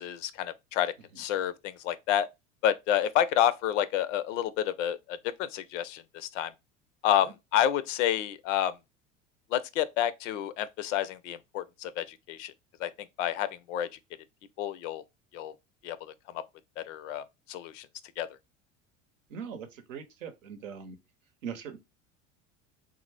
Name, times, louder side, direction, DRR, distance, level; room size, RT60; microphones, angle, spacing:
voice 1, 0.0-2.3 2.6-6.5 7.0-8.8 9.5-12.5 12.8-13.9 14.6-15.0 15.3-15.5 15.8-16.4 16.8-17.9 18.2-18.3, left 11 dB, 70° left, 0.5 m, -29 dB
voice 2, 19.3-21.0 21.4-21.8, right 7 dB, 80° right, 0.8 m, -40 dB
3.5 x 2.0 x 3.2 m
hypercardioid pair, 80°, 38 cm